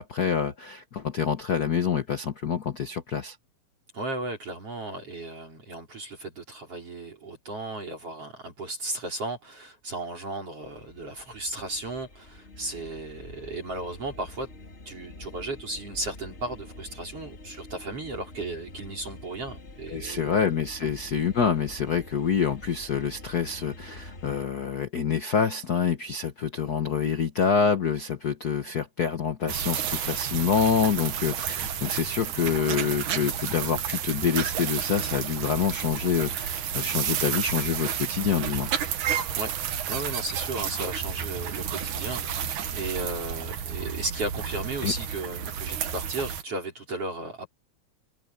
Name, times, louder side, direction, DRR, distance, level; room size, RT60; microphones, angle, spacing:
voice 1, 0.0-3.4 19.9-38.7 44.8-44.9, left 7 dB, 70° left, 0.9 m, -27 dB
voice 2, 3.9-14.5 14.9-20.4 39.4-39.5 39.9-47.5, right 2 dB, 50° right, 5.8 m, -35 dB
sound 1, 10.6-24.5, left 2 dB, 20° left, 3.2 m, -46 dB
sound 2, 29.5-46.4, right 8 dB, 90° right, 3.1 m, -31 dB
omnidirectional pair, 3.4 m